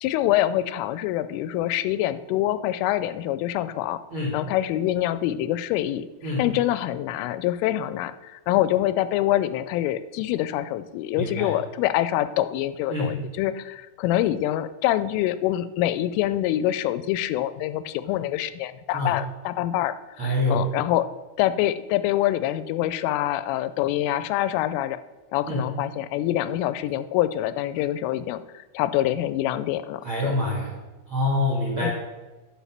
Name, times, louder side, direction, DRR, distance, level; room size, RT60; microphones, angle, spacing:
voice 1, 0.0-4.0 4.3-6.1 6.4-21.1 21.4-25.0 25.3-30.3 31.8-31.9, left 13 dB, 85° left, 14 dB, 3.0 m, -25 dB
voice 2, 4.1-4.4 6.2-6.5 11.2-11.6 12.9-13.2 18.9-19.2 20.2-20.7 25.5-25.7 30.0-30.7 31.1-31.9, left 1 dB, 55° right, -4 dB, 1.4 m, -26 dB
9.8 x 5.8 x 7.3 m, 1.2 s
omnidirectional pair, 5.6 m